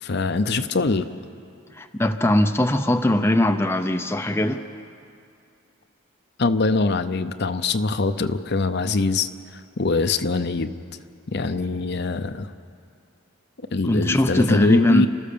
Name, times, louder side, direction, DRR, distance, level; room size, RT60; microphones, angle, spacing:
voice 1, 0.0-1.1 6.4-9.3 9.8-10.7 11.3-12.5 13.7-15.1, left 3 dB, 50° left, 10 dB, 0.7 m, -23 dB
voice 2, 1.8-4.6 13.9-15.1, left 1 dB, 10° left, 6 dB, 0.6 m, -20 dB
30.0 x 13.5 x 6.9 m, 2.4 s
head